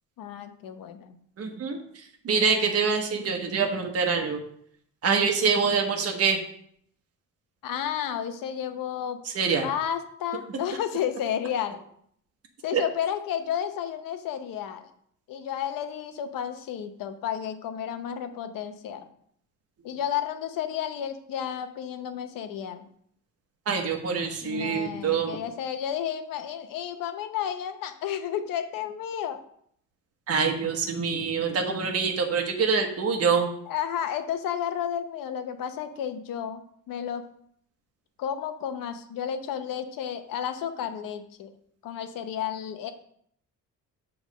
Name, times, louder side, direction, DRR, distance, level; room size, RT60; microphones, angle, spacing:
voice 1, 0.2-1.2 7.6-9.2 9.6-11.8 12.6-14.9 15.3-19.1 19.8-22.9 24.4-29.4 33.7-36.6 36.9-37.3 38.2-41.5 41.8-42.9, left 9 dB, 85° left, 8 dB, 0.8 m, -32 dB
voice 2, 1.4-4.4 5.0-6.4 9.2-9.7 12.7-12.8 23.7-25.3 30.3-33.5, right 5 dB, 45° right, 2 dB, 1.2 m, -25 dB
7.1 x 3.5 x 6.2 m, 0.67 s
cardioid pair, 135°, 33 cm